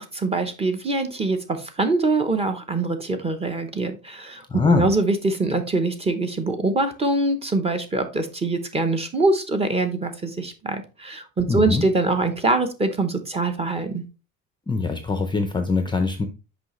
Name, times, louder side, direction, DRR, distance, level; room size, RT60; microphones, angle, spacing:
voice 1, 0.0-14.0, right 2 dB, 20° right, 8 dB, 0.8 m, -24 dB
voice 2, 4.5-4.9 11.5-11.8 14.7-16.3, left 4 dB, 15° left, 6 dB, 0.5 m, -22 dB
6.1 x 5.0 x 3.0 m, 0.31 s
cardioid pair, 150°, 34 cm